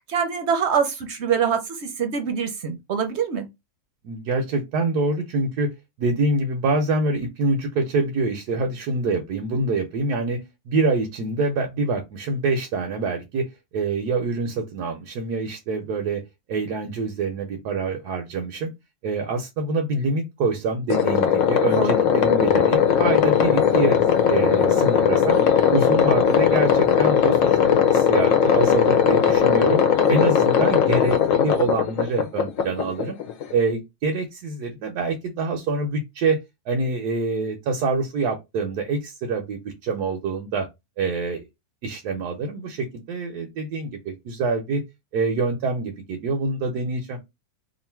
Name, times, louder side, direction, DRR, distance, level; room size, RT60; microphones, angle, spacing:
voice 1, 0.1-3.5 21.7-21.9, right 7 dB, 55° right, 0.8 m, -24 dB
voice 2, 4.0-5.7 6.0-10.4 10.7-13.5 13.7-16.2 16.5-18.7 19.0-25.4 25.7-29.8 30.1-33.2 33.5-36.4 36.7-40.7 41.0-41.4 41.8-44.8 45.1-47.2, right 3 dB, 85° right, 1.3 m, -25 dB
sound 1, 20.9-33.5, left 8 dB, 60° left, 1.0 m, -18 dB
3.0 x 2.5 x 4.4 m
omnidirectional pair, 1.6 m